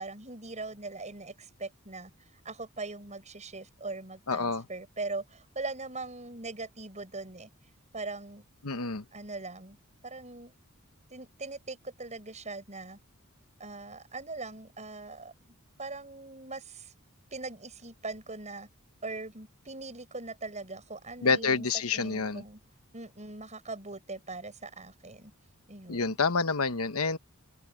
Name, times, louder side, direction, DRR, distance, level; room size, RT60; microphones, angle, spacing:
voice 1, 0.0-2.1 2.4-7.5 7.9-8.5 9.1-9.8 10.0-10.5 11.1-13.0 13.6-15.3 15.8-16.9 17.3-18.7 19.0-21.7 21.9-22.6 22.9-25.3 25.7-26.2, right 3 dB, 30° right, 8.0 m, -41 dB
voice 2, 4.3-4.7 8.6-9.0 21.2-22.4 25.9-27.2, left 4 dB, 75° left, 1.1 m, -28 dB
open air
head